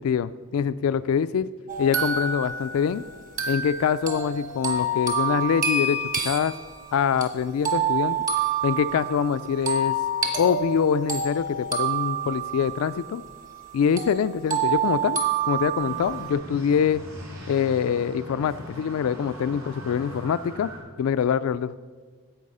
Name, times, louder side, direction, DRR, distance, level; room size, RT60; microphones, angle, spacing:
voice 1, 0.0-1.5 1.8-3.0 3.5-6.5 6.9-8.2 8.6-9.9 10.4-13.2 13.7-15.2 15.5-17.0 17.5-20.7 21.0-21.8, left 7 dB, 70° left, 14 dB, 0.3 m, -24 dB
sound 1, 1.7-13.7 14.0-16.3, right 4 dB, 40° right, 1.5 m, -28 dB
sound 2, 15.8-20.8, equal, 75° right, 3.5 m, -40 dB
11.5 x 7.7 x 5.4 m, 1.5 s
head